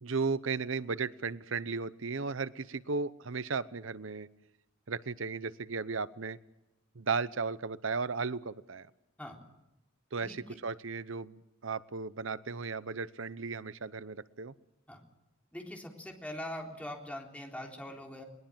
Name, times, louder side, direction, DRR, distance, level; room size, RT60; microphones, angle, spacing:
voice 1, 0.0-4.3 4.9-6.4 7.0-8.9 10.1-14.5, right 4 dB, 70° right, 16 dB, 0.8 m, -35 dB
voice 2, 10.2-10.6 14.9-15.0 15.5-18.2, left 1 dB, 5° left, 1 dB, 3.6 m, -42 dB
22.0 x 20.5 x 7.5 m, 0.93 s
head